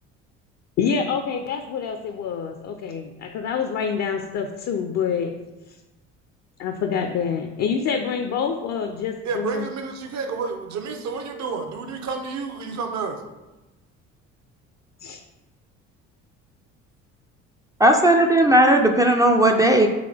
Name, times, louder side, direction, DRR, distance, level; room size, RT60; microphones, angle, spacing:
voice 1, 0.8-5.3 6.6-9.7 15.0-15.2, left 6 dB, 50° left, 5 dB, 0.5 m, -26 dB
voice 2, 9.2-13.2, right 5 dB, 50° right, 5 dB, 0.7 m, -30 dB
voice 3, 17.8-19.9, right 1 dB, 10° right, 2 dB, 0.4 m, -16 dB
3.7 x 3.2 x 3.4 m, 1.1 s
hypercardioid pair, 65°, 35 cm